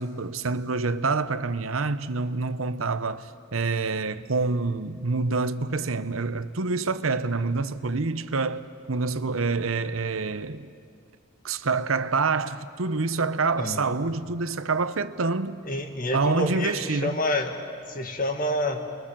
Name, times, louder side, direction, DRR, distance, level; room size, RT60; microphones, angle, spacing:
voice 1, 0.0-10.7 11.4-15.6 16.1-17.3, right 4 dB, 80° right, 0.9 m, -27 dB
voice 2, 13.6-13.9 15.7-17.6 17.9-18.8, left 1 dB, 40° left, 2.1 m, -28 dB
30.0 x 22.5 x 7.5 m
head